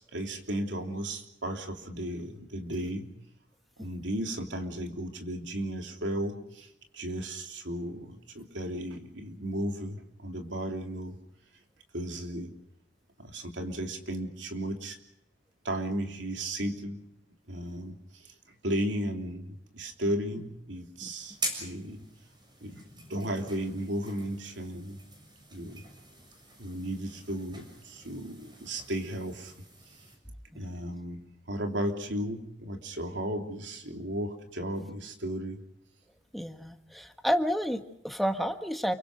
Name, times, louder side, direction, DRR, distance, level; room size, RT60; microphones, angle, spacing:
voice 1, 0.0-3.2 3.8-11.2 11.9-12.5 13.2-15.0 15.6-17.0 17.5-22.0 22.6-25.0 25.5-25.8 26.6-30.1 30.5-35.6, right 1 dB, 85° right, 4 dB, 3.2 m, -35 dB
sound 1, 21.2-30.2, right 1 dB, 25° right, 6.9 m, -44 dB
voice 2, 36.3-38.9, equal, ahead, 6 dB, 1.4 m, -30 dB
29.0 x 24.0 x 5.0 m, 0.80 s
head